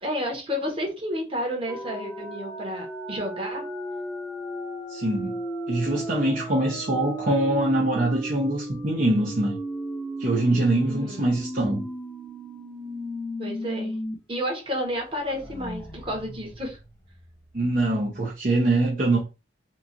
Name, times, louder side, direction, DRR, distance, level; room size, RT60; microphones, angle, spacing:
voice 1, 0.0-3.6 10.8-11.3 13.4-13.9 14.3-16.8, equal, 30° right, 1.1 m, -31 dB
sound 1, 1.7-14.1 14.5-14.6 15.0-17.6, right 1 dB, 5° left, 0.7 m, -35 dB
voice 2, 4.9-5.4 5.7-9.6 10.2-11.9 17.5-19.2, right 1 dB, 45° right, 0.7 m, -23 dB
2.9 x 2.4 x 3.8 m
head